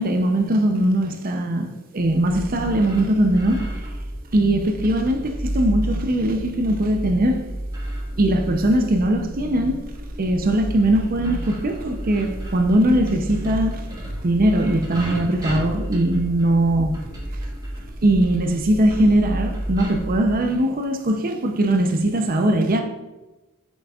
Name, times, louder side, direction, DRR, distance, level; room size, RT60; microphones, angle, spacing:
voice 1, 0.0-3.7 4.3-7.5 8.2-9.9 10.2-13.8 14.2-17.0 18.0-22.8, right 1 dB, 40° right, 4 dB, 0.6 m, -20 dB
sound 1, 2.0-20.3, right 1 dB, 15° right, 1.2 m, -31 dB
7.7 x 6.2 x 2.4 m, 1.1 s
head